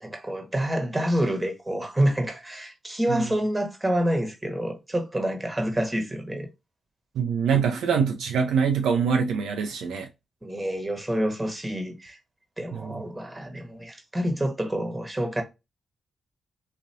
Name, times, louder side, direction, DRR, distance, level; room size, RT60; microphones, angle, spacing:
voice 1, 0.0-6.5 10.4-12.2 12.6-15.4, right 1 dB, 20° right, 1.2 m, -27 dB
voice 2, 7.1-10.1 12.7-13.0, right 6 dB, 75° right, 0.5 m, -24 dB
3.1 x 2.5 x 2.6 m
hypercardioid pair, 40°, 0 cm